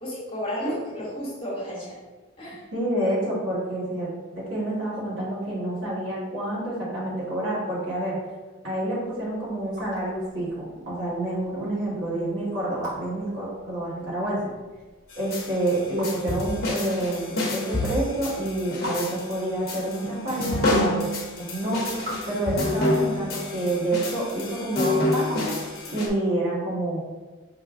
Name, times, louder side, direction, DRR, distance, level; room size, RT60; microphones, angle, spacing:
voice 1, 0.0-2.0 2.4-2.6, equal, 25° left, -7 dB, 1.2 m, -32 dB
voice 2, 2.7-8.2 8.6-14.4 15.2-21.1 21.4-21.8 22.3-25.6 25.9-27.0, right 1 dB, 60° right, -8 dB, 1.3 m, -28 dB
Raindrop / Drip, 9.0-26.2, right 1 dB, 35° right, 1.2 m, -45 dB
sound 1, 15.1-26.1, left 1 dB, 50° left, 0.9 m, -28 dB
5.2 x 3.3 x 2.5 m, 1.3 s
head